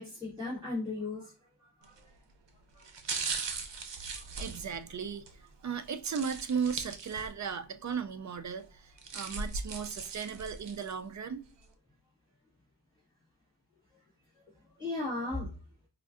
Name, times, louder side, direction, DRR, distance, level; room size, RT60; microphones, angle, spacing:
voice 1, 0.0-1.3 1.6-2.1 2.7-2.9 4.1-4.3 14.3-15.5, left 2 dB, 10° right, 1.7 m, -37 dB
sound 1, 1.8-2.1 2.8-5.3 6.0-7.5 7.9-8.0 8.8-10.9 11.4-11.5, right 4 dB, 85° right, 0.6 m, -39 dB
voice 2, 4.3-11.4, right 6 dB, 45° right, 0.4 m, -36 dB
4.5 x 2.5 x 2.4 m
wide cardioid pair, 75°, 42 cm